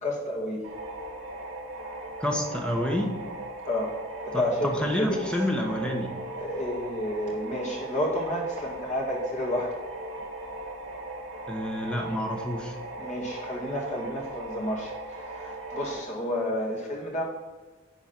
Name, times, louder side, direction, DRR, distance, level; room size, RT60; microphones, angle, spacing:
voice 1, 0.0-0.6 3.7-4.0 4.3-4.7 5.0-5.2 6.4-9.8 13.0-17.2, left 1 dB, 35° left, -2 dB, 2.2 m, -30 dB
sound 1, 0.6-16.0, right 1 dB, 70° right, 2.1 m, -38 dB
voice 2, 2.2-3.2 4.3-6.1 11.5-12.8, equal, 5° left, 1 dB, 1.1 m, -28 dB
11.0 x 4.0 x 5.8 m, 1.3 s
head